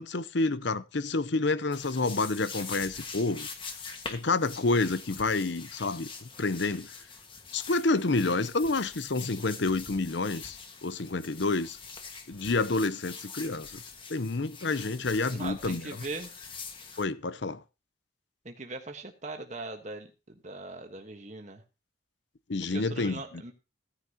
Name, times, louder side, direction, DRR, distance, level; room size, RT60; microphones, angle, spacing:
voice 1, 0.0-3.5 4.1-6.9 7.5-11.8 12.3-13.8 14.1-15.9 17.0-17.6 22.5-23.2, left 3 dB, 60° left, 0.7 m, -29 dB
sound 1, 1.7-17.0, left 5 dB, 25° left, 1.7 m, -44 dB
voice 2, 15.3-16.3 18.4-21.6 22.7-23.5, right 2 dB, 35° right, 1.3 m, -40 dB
16.0 x 9.8 x 2.9 m
head